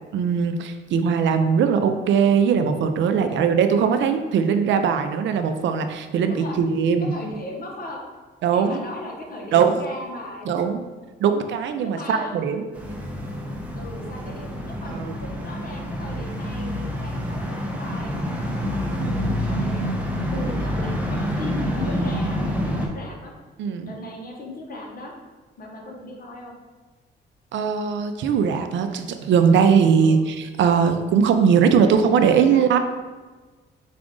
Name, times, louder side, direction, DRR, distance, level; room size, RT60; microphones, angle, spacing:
voice 1, 0.1-7.1 8.4-8.8 9.5-9.8 10.5-10.8 11.2-12.6 14.9-15.2 23.6-23.9 27.5-32.8, right 6 dB, 70° right, 8 dB, 0.4 m, -20 dB
voice 2, 6.3-6.6 7.1-8.0 8.5-10.7 11.8-12.3 13.7-19.9 20.3-23.3 23.8-25.1 25.6-26.6 30.0-30.2 32.5-32.8, left 1 dB, 45° left, 0 dB, 1.0 m, -37 dB
sound 1, 12.7-22.9, equal, 5° right, 0.7 m, -27 dB
4.9 x 2.5 x 3.6 m, 1.3 s
cardioid pair, 90°, 20 cm